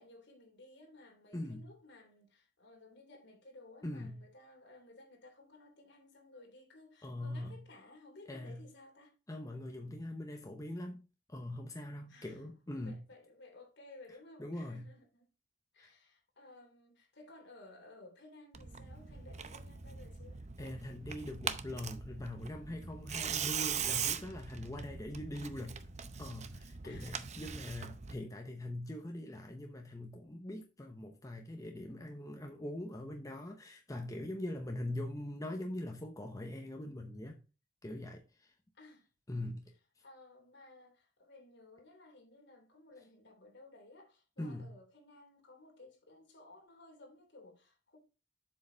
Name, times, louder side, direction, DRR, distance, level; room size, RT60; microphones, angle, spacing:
voice 1, 0.0-9.1 12.1-15.3 15.7-20.4 26.8-27.7 38.7-39.1 39.4-39.5 40.0-48.0, left 2 dB, 60° left, 3.1 m, -57 dB
voice 2, 1.3-1.7 3.8-4.2 7.0-7.6 8.3-8.6 9.3-13.0 14.4-14.8 15.8-15.9 20.6-25.8 26.2-37.4 37.8-38.5 39.3-39.7 44.4-44.7, left 1 dB, 15° left, 0.8 m, -42 dB
Tearing, 18.5-28.1, right 7 dB, 35° right, 0.7 m, -41 dB
7.7 x 6.7 x 3.9 m
head